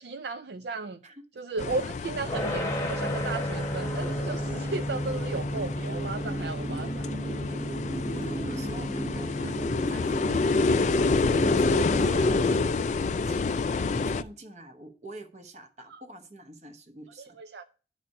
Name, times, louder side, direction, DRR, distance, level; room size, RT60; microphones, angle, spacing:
voice 1, 0.0-1.0 1.4-7.1 15.9-16.0 17.2-17.6, right 3 dB, 65° right, 0.4 m, -35 dB
sound 1, 1.6-14.2, left 3 dB, 40° left, 0.3 m, -28 dB
sound 2, 2.3-13.2, equal, 15° left, 1.0 m, -35 dB
sound 3, 3.8-12.5, right 2 dB, 15° right, 0.9 m, -37 dB
voice 2, 8.1-12.7 13.0-17.4, right 1 dB, 40° right, 1.0 m, -46 dB
10.5 x 4.2 x 5.3 m
head